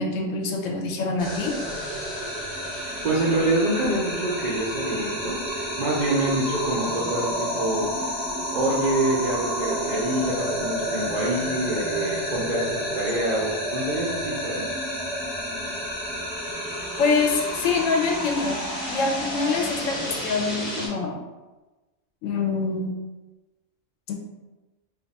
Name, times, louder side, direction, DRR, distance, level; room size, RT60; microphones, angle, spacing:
voice 1, 0.0-1.6 17.0-18.6 18.9-21.2 22.2-22.9 24.1-24.2, left 4 dB, 75° left, 2 dB, 0.9 m, -25 dB
sound 1, 1.2-20.9, equal, 25° left, 0.9 m, -30 dB
voice 2, 2.7-7.9 8.5-14.6, right 1 dB, 65° right, -6 dB, 0.4 m, -26 dB
2.5 x 2.3 x 4.0 m, 1.1 s
omnidirectional pair, 1.4 m